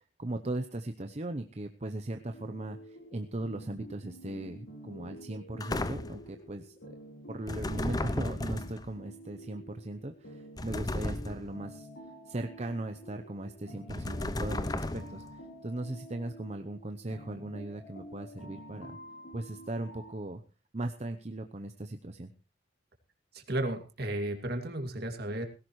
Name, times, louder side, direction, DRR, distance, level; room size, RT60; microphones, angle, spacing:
voice 1, 0.2-7.0 7.3-11.9 12.3-15.2 15.6-19.0 19.3-20.4 20.7-22.3, right 2 dB, 35° right, 6 dB, 0.7 m, -38 dB
sound 1, 2.3-20.1, equal, 75° left, 4.0 m, -49 dB
sound 2, 5.6-6.3 7.5-8.9 10.6-11.6 13.9-15.3, left 2 dB, 20° left, 0.7 m, -34 dB
voice 2, 23.3-25.4, right 1 dB, 55° right, 5 dB, 2.4 m, -33 dB
18.0 x 16.0 x 3.1 m, 0.32 s
head